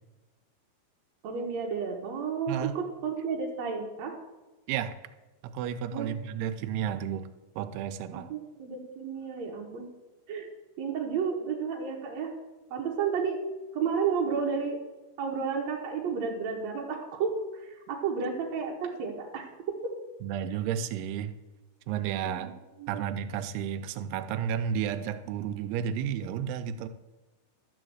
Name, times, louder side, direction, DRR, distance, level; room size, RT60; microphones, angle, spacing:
voice 1, 1.2-4.2 5.9-6.2 8.3-9.9 10.3-10.5 10.8-12.3 12.7-13.4 13.7-14.8 15.2-19.9 22.2-22.5 22.8-23.0, right 6 dB, 70° right, -1 dB, 1.7 m, -32 dB
voice 2, 5.5-7.3 7.6-8.3 20.2-21.4 21.9-22.5 22.9-26.9, right 8 dB, 85° right, 9 dB, 2.6 m, -32 dB
12.0 x 4.9 x 7.9 m, 1.1 s
omnidirectional pair, 4.7 m